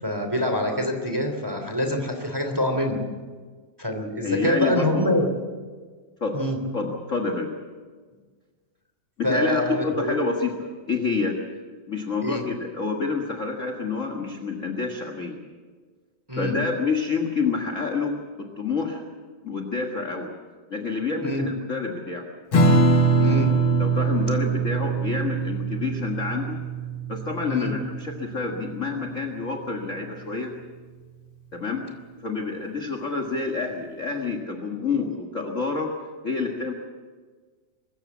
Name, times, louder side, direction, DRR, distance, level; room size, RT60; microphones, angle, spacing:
voice 1, 0.0-3.1 3.8-5.3 6.3-6.6 9.2-10.1 12.2-12.4 16.3-16.6 21.2-21.5 23.2-23.6 24.5-24.6 27.5-27.7, left 1 dB, 10° right, 4 dB, 2.5 m, -25 dB
voice 2, 4.2-5.1 6.2-6.4 6.7-7.5 9.2-11.4 11.9-15.4 16.3-19.0 19.4-20.3 20.7-22.3 23.8-26.6 27.1-30.5 31.5-31.9 32.2-35.9 36.2-36.7, left 4 dB, 35° left, 2 dB, 1.5 m, -28 dB
Strum, 22.5-29.4, right 3 dB, 50° left, 2.2 m, -23 dB
24.0 x 14.5 x 8.5 m, 1.5 s
omnidirectional pair, 3.4 m